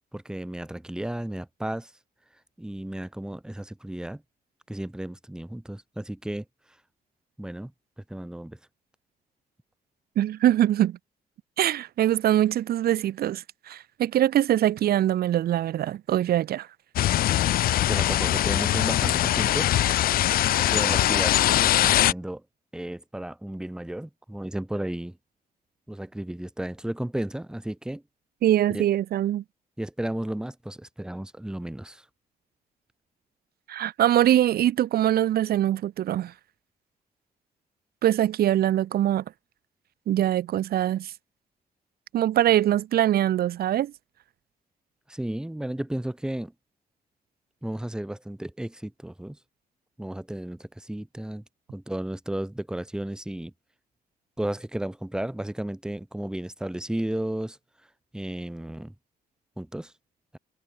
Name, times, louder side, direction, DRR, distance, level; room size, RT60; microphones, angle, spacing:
voice 1, 0.1-1.9 2.6-4.2 4.7-6.4 7.4-7.7 8.1-8.6 17.9-19.7 20.6-22.4 22.7-25.2 25.9-28.0 28.7-28.9 29.8-32.0 45.1-46.5 47.6-49.4 50.0-51.4 51.7-53.5 54.4-57.6 58.1-58.9 59.6-59.9, right 1 dB, 5° right, 2.1 m, -33 dB
voice 2, 10.2-11.0 11.6-16.7 28.4-29.4 33.7-36.3 38.0-39.2 40.1-41.1 42.1-43.9, right 12 dB, 85° right, 2.5 m, -23 dB
sound 1, 17.0-22.1, left 13 dB, 70° left, 0.5 m, -22 dB
cardioid pair, 145°, 16 cm